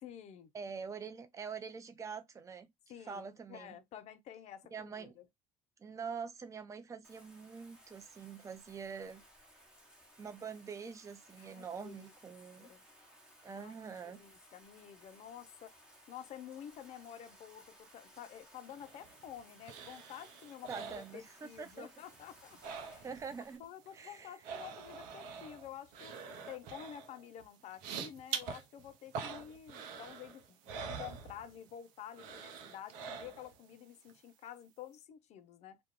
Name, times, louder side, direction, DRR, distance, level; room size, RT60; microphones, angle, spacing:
voice 1, 0.0-0.5 2.9-5.2 11.4-12.0 12.6-12.8 13.5-13.7 14.0-15.7 16.1-22.6 22.9-23.1 23.6-26.2 26.5-35.8, left 10 dB, 50° left, 0.5 m, -50 dB
voice 2, 0.5-2.7 3.1-3.8 4.7-5.1 5.8-9.2 10.2-12.7 13.4-14.2 20.7-21.9 23.0-23.6 23.9-24.4, right 6 dB, 20° right, 0.5 m, -45 dB
Bathtub (filling or washing), 7.0-23.6, equal, 5° right, 1.0 m, -61 dB
sound 1, 18.7-21.7 22.0-23.4 23.6-31.8 32.1-33.7 34.1-34.2, right 6 dB, 65° right, 0.6 m, -46 dB
2.3 x 2.2 x 3.0 m
hypercardioid pair, 65°, 15 cm